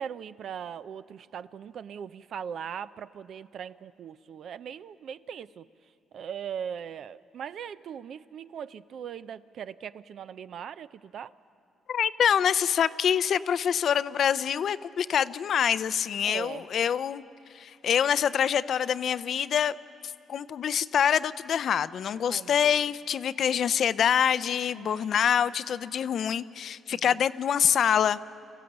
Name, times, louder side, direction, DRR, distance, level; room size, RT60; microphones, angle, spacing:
voice 1, 0.0-5.7 6.1-11.3 16.2-16.7 22.3-22.6 24.7-25.1 26.9-27.2, right 8 dB, 65° right, 0.5 m, -39 dB
voice 2, 11.9-17.2 17.5-19.7 20.0-28.2, left 8 dB, 60° left, 0.5 m, -25 dB
25.0 x 15.5 x 7.9 m
cardioid pair, 90°, 0 cm